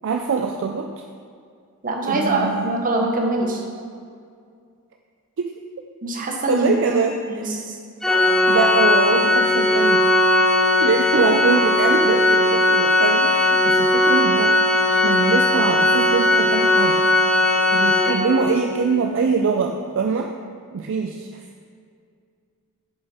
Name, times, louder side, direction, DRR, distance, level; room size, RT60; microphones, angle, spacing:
voice 1, 0.0-1.0 2.0-2.7 5.4-5.5 6.5-7.6 8.5-10.0 10.5-14.6 14.9-17.0 17.7-20.3 20.7-21.4, right 5 dB, 60° right, 3 dB, 0.4 m, -23 dB
voice 2, 1.8-3.6 6.0-6.7 7.3-7.7, right 2 dB, 40° right, 0 dB, 1.0 m, -23 dB
Organ, 8.0-18.7, left 1 dB, ahead, 0.6 m, -18 dB
7.0 x 6.8 x 4.1 m, 2.3 s
head